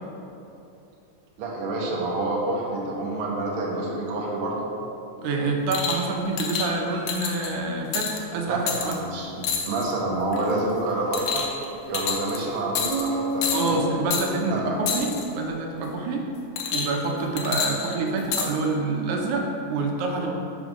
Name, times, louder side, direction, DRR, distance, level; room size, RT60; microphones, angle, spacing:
voice 1, 1.4-4.7 8.5-11.4 11.9-13.8 14.4-14.9, right 2 dB, 65° right, -3 dB, 1.4 m, -28 dB
voice 2, 5.2-9.0 13.5-16.2 16.7-20.3, right 3 dB, 80° right, 1 dB, 2.1 m, -27 dB
sound 1, 5.7-6.0 6.4-6.7 7.1-7.5 7.9-8.2 8.7-8.9 9.4-9.9 10.3-10.6 11.1-11.6 11.9-12.4 12.7-13.1 13.4-13.7 14.1-14.3 14.9-15.2 16.6-17.1 17.4-18.5 19.3-19.4, left 6 dB, 75° left, 1.4 m, -28 dB
sound 2, 12.9-16.8, left 1 dB, 40° left, 1.0 m, -33 dB
5.1 x 5.0 x 4.9 m, 2.8 s
omnidirectional pair, 3.5 m